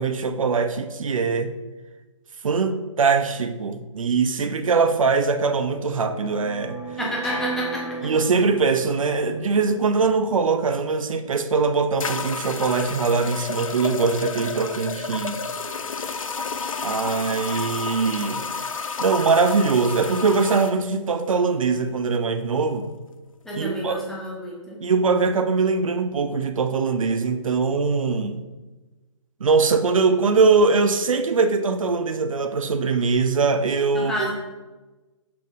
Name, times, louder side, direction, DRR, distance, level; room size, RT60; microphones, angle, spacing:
voice 1, 0.0-1.5 2.4-6.8 8.0-15.4 16.8-18.4 19.0-22.9 23.6-24.0 24.8-28.4 29.4-34.3, right 4 dB, 80° right, 9 dB, 0.5 m, -22 dB
sound 1, 4.9-11.2, right 4 dB, 20° left, 1.2 m, -37 dB
voice 2, 7.0-8.1 23.4-24.8 33.9-34.3, equal, 5° left, -5 dB, 0.5 m, -30 dB
sound 2, 11.2-11.3 12.0-20.7, left 5 dB, 80° left, 0.5 m, -31 dB
5.8 x 3.8 x 2.4 m, 1.2 s
hypercardioid pair, 150°, 17 cm